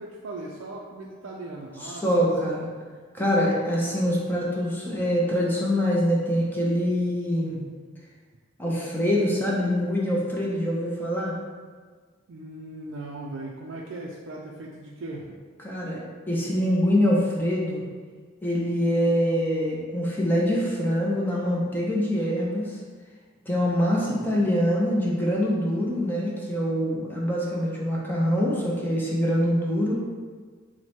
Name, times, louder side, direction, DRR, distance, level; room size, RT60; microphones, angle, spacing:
voice 1, 0.0-2.3 12.3-15.3 24.0-24.5, right 2 dB, 70° right, -3 dB, 0.4 m, -38 dB
voice 2, 1.8-2.6 3.1-7.6 8.6-11.3 15.6-16.0 16.3-17.8 18.4-22.8 23.5-29.9, equal, 10° left, -5 dB, 0.5 m, -24 dB
4.4 x 2.1 x 4.2 m, 1.5 s
head